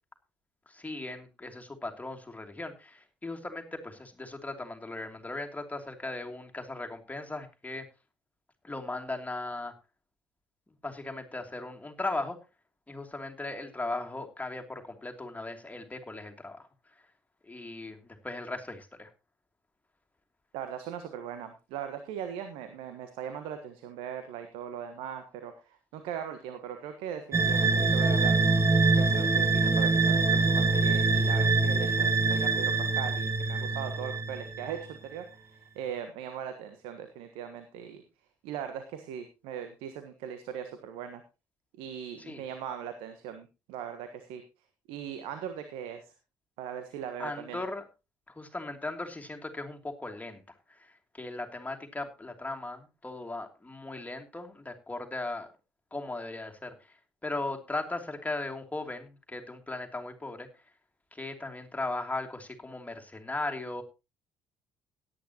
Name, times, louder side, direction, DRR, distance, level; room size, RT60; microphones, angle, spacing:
voice 1, 0.7-7.9 8.6-9.7 10.8-12.4 12.9-16.7 17.4-19.1 42.2-42.4 47.2-47.8 48.3-50.4 50.7-55.5 55.9-57.0 57.2-60.5 61.1-63.8, left 2 dB, 15° left, 3 dB, 2.8 m, -37 dB
voice 2, 20.5-28.4 28.9-38.0 38.4-41.2 41.8-44.4 44.9-46.1 46.6-47.6, right 9 dB, 70° right, 8 dB, 1.4 m, -39 dB
sound 1, 27.3-34.8, right 3 dB, 30° right, 1.8 m, -25 dB
17.0 x 10.5 x 3.0 m, 0.28 s
figure-of-eight pair, 50°, 10 cm